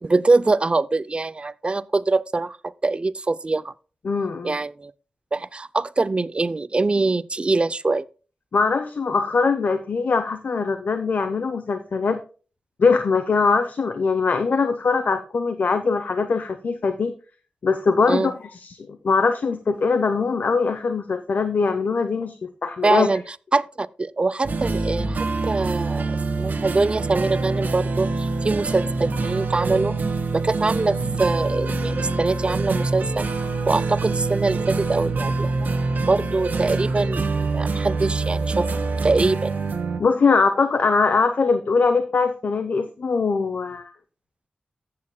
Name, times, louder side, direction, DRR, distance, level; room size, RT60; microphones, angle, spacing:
voice 1, 0.0-3.7 4.4-4.9 5.3-8.1 18.1-18.3 22.8-23.2 23.5-30.0 30.3-33.3 33.7-35.7 36.1-39.7, right 3 dB, 35° right, 0.4 m, -23 dB
voice 2, 4.0-4.5 8.5-12.2 12.8-17.1 17.6-22.3 22.6-23.1 40.0-43.9, left 4 dB, 70° left, 0.8 m, -22 dB
sound 1, 24.4-40.0, right 3 dB, 75° right, 1.3 m, -25 dB
14.5 x 8.6 x 2.2 m
cardioid pair, 65°, 3 cm